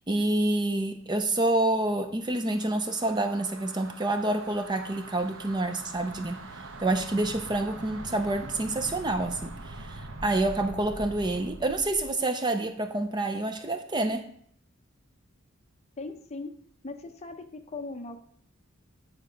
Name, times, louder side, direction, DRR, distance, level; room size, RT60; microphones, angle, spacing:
voice 1, 0.1-6.4 6.8-14.2, right 2 dB, 20° right, 8 dB, 0.5 m, -28 dB
sound 1, 2.4-12.2, right 2 dB, 75° right, 0.9 m, -43 dB
voice 2, 16.0-16.5 16.8-18.2, left 3 dB, 30° left, 7 dB, 0.7 m, -39 dB
8.8 x 4.4 x 5.1 m, 0.63 s
head